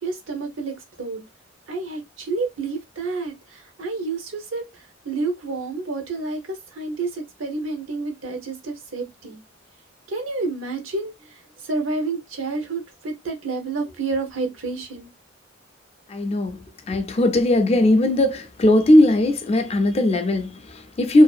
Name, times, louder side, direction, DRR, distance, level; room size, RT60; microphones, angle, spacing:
voice 1, 0.0-1.2 1.7-9.4 10.1-15.1, right 3 dB, 80° right, 0.8 m, -29 dB
voice 2, 16.1-21.2, left 1 dB, 30° left, 0.4 m, -18 dB
2.6 x 2.4 x 2.3 m
head